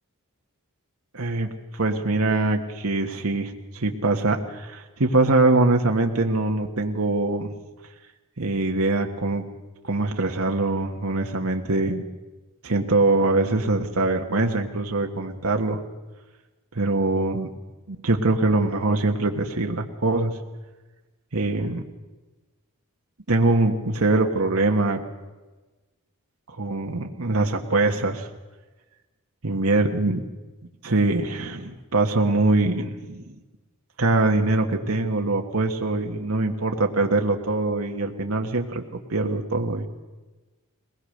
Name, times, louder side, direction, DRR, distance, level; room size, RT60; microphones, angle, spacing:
voice 1, 1.1-7.5 8.4-9.4 9.8-12.0 12.6-15.8 16.7-17.5 17.9-20.4 21.3-21.8 23.3-25.0 26.5-28.3 29.4-30.2 30.8-33.3 34.0-38.8 39.1-39.9, right 2 dB, 75° right, 3 dB, 1.4 m, -23 dB
21.5 x 19.5 x 6.6 m, 1.2 s
head